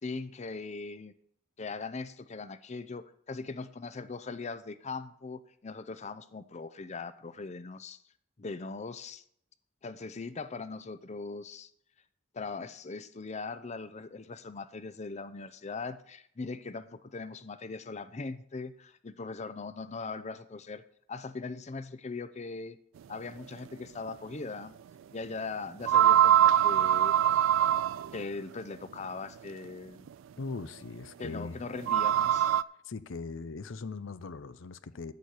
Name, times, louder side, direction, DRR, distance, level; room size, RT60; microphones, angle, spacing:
voice 1, 0.0-1.1 1.6-8.0 8.4-9.2 9.8-11.7 12.3-20.8 21.1-22.8 23.1-24.7 25.1-27.1 28.1-30.1 31.2-32.6, left 4 dB, 35° left, 0.6 m, -40 dB
sound 1, 24.1-24.2 25.8-28.2 30.1-30.2 31.8-32.6, right 11 dB, 85° right, 0.3 m, -23 dB
voice 2, 30.4-31.6 32.8-35.1, left 4 dB, 90° left, 0.6 m, -40 dB
13.0 x 4.4 x 8.2 m
head